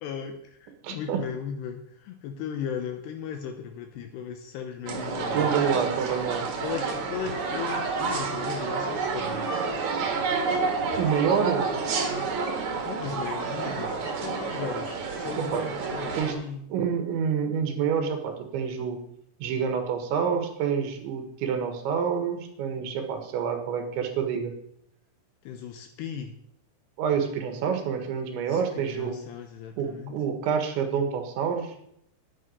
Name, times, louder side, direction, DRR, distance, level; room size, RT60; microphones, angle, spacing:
voice 1, 0.0-5.5 6.6-9.7 12.8-16.7 25.4-26.3 28.5-30.2, left 8 dB, 80° left, 5 dB, 2.8 m, -37 dB
voice 2, 0.8-1.2 5.3-6.5 10.5-10.6 11.0-11.7 15.4-15.6 16.2-16.4 16.7-19.0 19.4-24.5 27.0-29.2 29.8-31.7, right 7 dB, 90° right, 5 dB, 3.9 m, -27 dB
sound 1, 4.9-16.3, right 4 dB, 55° right, 2.3 m, -29 dB
11.0 x 9.8 x 5.5 m, 0.72 s
omnidirectional pair, 5.2 m